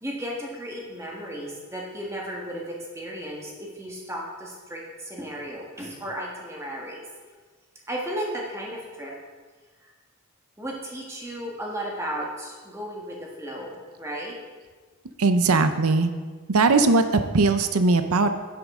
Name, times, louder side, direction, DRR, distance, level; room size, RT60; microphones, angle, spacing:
voice 1, 0.0-7.0 7.9-9.1 10.6-14.3, equal, 10° right, -2 dB, 1.5 m, -34 dB
voice 2, 15.2-16.1 16.5-18.3, right 3 dB, 85° right, 9 dB, 0.7 m, -20 dB
10.5 x 8.6 x 3.7 m, 1.4 s
head